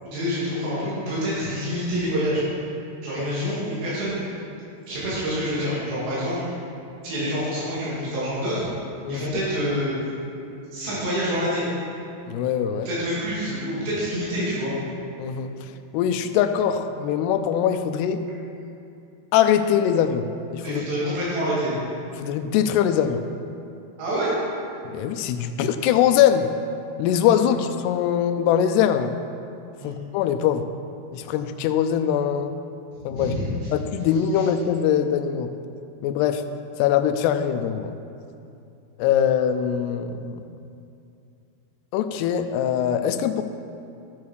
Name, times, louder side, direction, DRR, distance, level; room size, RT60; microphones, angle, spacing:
voice 1, 0.0-2.4 3.0-4.2 4.9-6.4 7.0-8.6 9.1-9.9 10.7-11.6 12.9-14.7 20.6-21.8 24.0-24.3 29.8-30.0 32.9-33.7 34.3-34.5, equal, 90° right, -10 dB, 5.0 m, -27 dB
voice 2, 12.3-12.9 15.2-15.5 15.9-18.2 19.3-20.8 22.2-23.2 24.9-26.5 27.0-29.1 29.8-30.7 31.1-32.5 33.1-33.3 33.7-35.5 36.0-36.4 36.8-38.0 39.0-40.4 41.9-43.4, left 9 dB, 85° left, 9 dB, 2.6 m, -22 dB
14.0 x 7.1 x 4.7 m, 2.6 s
omnidirectional pair, 4.8 m